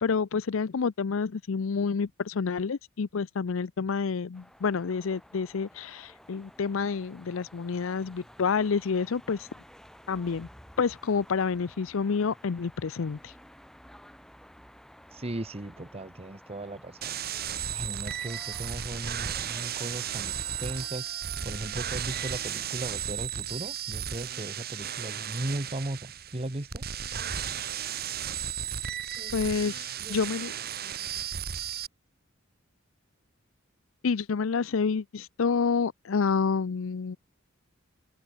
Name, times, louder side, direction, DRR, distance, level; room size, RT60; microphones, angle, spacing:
voice 1, 0.0-9.5 10.1-10.5 10.8-13.3 29.3-30.5 34.0-37.2, left 5 dB, 70° left, 0.5 m, -28 dB
sound 1, 4.3-20.9, equal, 5° left, 6.1 m, -53 dB
voice 2, 15.1-17.4 17.7-26.8 29.2-29.6 30.0-30.3, right 1 dB, 30° right, 1.2 m, -37 dB
sound 2, 17.0-31.9, right 9 dB, 50° right, 1.2 m, -35 dB
sound 3, 19.0-24.5, right 5 dB, 80° right, 6.9 m, -54 dB
head